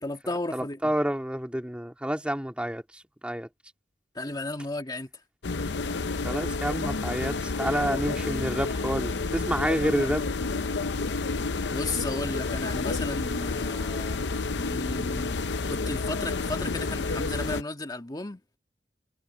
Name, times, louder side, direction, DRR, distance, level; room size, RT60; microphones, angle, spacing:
voice 1, 0.0-0.8 4.1-5.1 11.7-14.2 14.6-18.4, left 2 dB, 25° left, 1.9 m, -34 dB
voice 2, 0.5-3.5 6.2-10.3, equal, 5° right, 2.1 m, -29 dB
sound 1, 5.4-17.6, left 3 dB, 70° left, 0.7 m, -30 dB
head